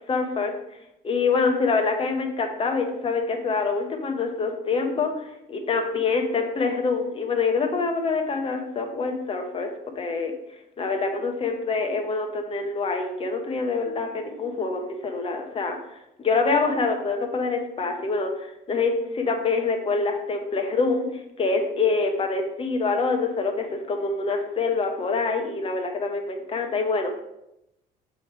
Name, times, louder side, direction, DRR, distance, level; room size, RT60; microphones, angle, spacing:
voice 1, 0.1-0.5 1.0-9.7 10.0-10.3 10.8-15.8 16.2-21.1 21.4-27.1, left 4 dB, 35° left, 3 dB, 1.1 m, -25 dB
6.9 x 3.4 x 4.6 m, 0.85 s
cardioid pair, 110°, 17 cm